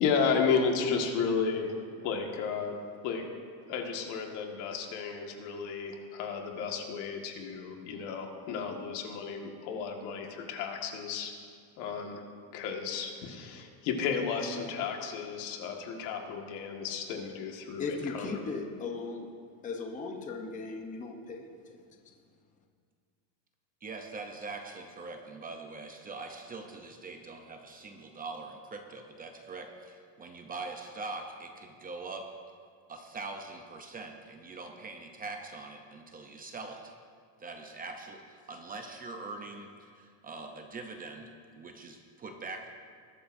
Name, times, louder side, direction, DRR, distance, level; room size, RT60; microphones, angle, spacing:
voice 1, 0.0-1.8 2.0-2.8 3.0-3.2 3.7-11.3 11.8-12.2 12.5-18.3, left 6 dB, 80° left, 3 dB, 1.8 m, -33 dB
voice 2, 17.8-19.3 19.6-21.8, left 4 dB, 15° left, 2 dB, 0.7 m, -37 dB
voice 3, 23.8-32.2 32.9-36.9 37.4-42.7, right 3 dB, 20° right, 3 dB, 0.6 m, -43 dB
20.5 x 12.0 x 2.6 m, 2.1 s
cardioid pair, 170°, 48 cm